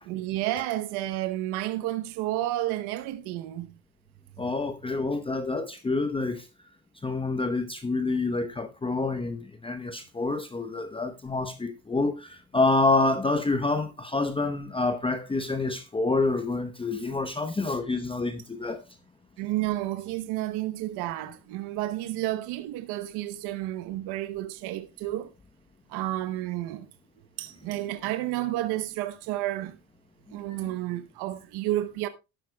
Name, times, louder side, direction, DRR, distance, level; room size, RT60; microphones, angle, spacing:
voice 1, 0.0-3.7 19.4-25.3 25.9-26.9 27.4-29.8 30.3-32.1, right 15 dB, 85° right, 0.9 m, -31 dB
voice 2, 4.4-6.5 7.0-18.8 30.5-30.6, left 3 dB, 15° left, 0.8 m, -27 dB
12.5 x 11.0 x 2.3 m
cardioid pair, 120°, 38 cm